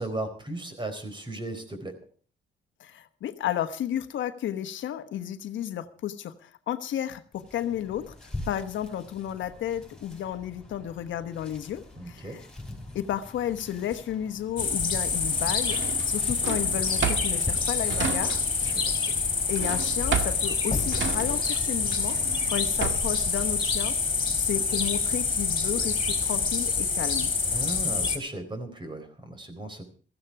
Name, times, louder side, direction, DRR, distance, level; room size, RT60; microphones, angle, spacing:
voice 1, 0.0-2.0 12.0-12.4 18.6-19.0 27.5-29.8, right 2 dB, 25° right, 8 dB, 4.2 m, -36 dB
voice 2, 2.8-12.4 12.9-15.8 16.0-18.8 19.5-22.2 22.5-24.0 24.3-27.3, left 11 dB, 75° left, 10 dB, 1.2 m, -32 dB
sound 1, 7.3-24.0, left 1 dB, 5° left, 5.8 m, -44 dB
sound 2, 14.6-28.2, left 5 dB, 25° left, 3.6 m, -27 dB
Drawer open or close, 15.6-18.7 19.0-23.2, right 7 dB, 65° right, 2.0 m, -33 dB
15.5 x 14.5 x 4.7 m, 0.41 s
cardioid pair, 90°, 20 cm